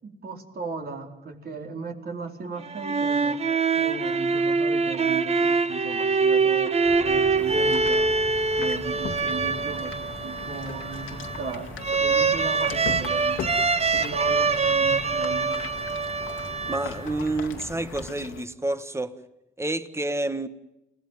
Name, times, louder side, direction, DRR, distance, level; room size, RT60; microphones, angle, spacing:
voice 1, 0.0-3.4 3.7-6.7 7.0-8.1 8.6-13.6 14.0-15.6, right 4 dB, 50° right, 4.4 m, -37 dB
sound 1, 2.6-17.2, right 4 dB, 30° right, 1.3 m, -24 dB
sound 2, 6.8-18.1, left 1 dB, 5° left, 1.8 m, -43 dB
sound 3, 7.4-18.5, left 7 dB, 80° left, 2.1 m, -40 dB
voice 2, 16.7-19.2 19.6-20.5, right 2 dB, 15° right, 1.7 m, -29 dB
29.0 x 17.0 x 9.3 m
cardioid pair, 90°, 20 cm